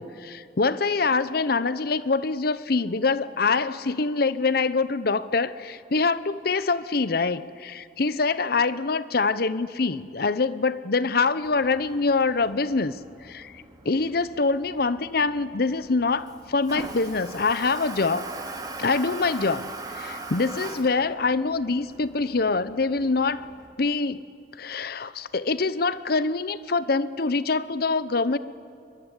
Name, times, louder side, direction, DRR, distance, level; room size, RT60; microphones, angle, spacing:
voice 1, 0.0-13.0 13.2-18.2 18.8-23.4 23.8-24.2 24.6-28.4, left 4 dB, 60° left, 15 dB, 0.8 m, -25 dB
Toilet flush, 11.4-23.7, right 2 dB, 20° right, 2.5 m, -41 dB
23.0 x 22.5 x 9.8 m, 2.6 s
head